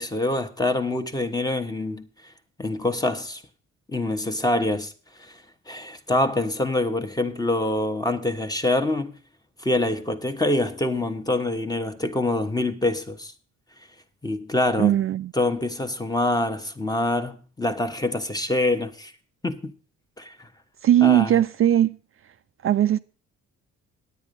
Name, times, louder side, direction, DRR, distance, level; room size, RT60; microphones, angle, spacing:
voice 1, 0.0-2.1 2.6-3.4 3.9-4.9 5.2-5.4 5.7-9.1 9.6-13.3 14.2-15.0 15.3-19.1 19.4-19.7 20.2-20.5 21.0-21.4, left 2 dB, 15° left, 1.2 m, -25 dB
voice 2, 14.8-15.3 20.8-22.0 22.6-23.0, right 11 dB, 45° right, 0.4 m, -19 dB
9.6 x 9.2 x 5.3 m
cardioid pair, 90°, 30 cm